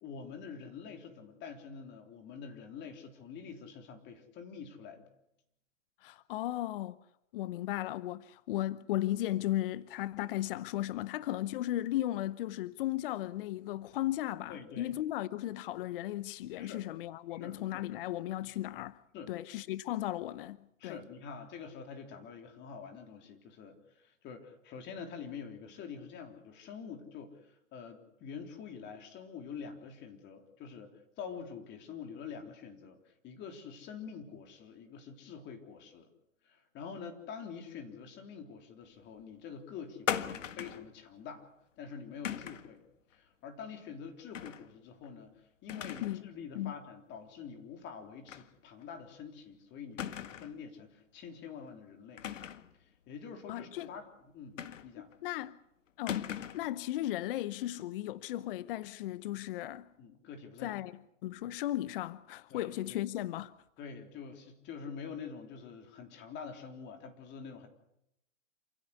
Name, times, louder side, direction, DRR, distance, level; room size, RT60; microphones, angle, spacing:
voice 1, 0.0-5.1 14.5-15.0 16.5-16.8 17.3-17.8 19.1-19.4 20.8-36.1 36.4-41.5 41.8-42.9 43.1-52.3 52.8-55.1 60.0-60.8 62.5-63.0 63.8-67.7, left 6 dB, 30° left, 3.6 m, -46 dB
voice 2, 6.0-7.0 7.3-19.0 19.3-20.6 20.8-21.0 46.0-46.2 46.5-46.7 53.5-53.9 55.0-55.6 56.0-59.9 60.6-60.9 61.2-63.5, left 14 dB, 45° left, 0.8 m, -36 dB
sound 1, 40.1-40.9 42.2-42.7 44.3-44.7 45.0-45.1 45.7-46.2 46.6-46.7 48.3-48.5 48.8-48.9 50.0-50.6 52.2-52.7 54.6-55.1 56.1-56.7, left 9 dB, 75° left, 1.6 m, -38 dB
28.0 x 16.5 x 8.3 m
hypercardioid pair, 130°, 38 cm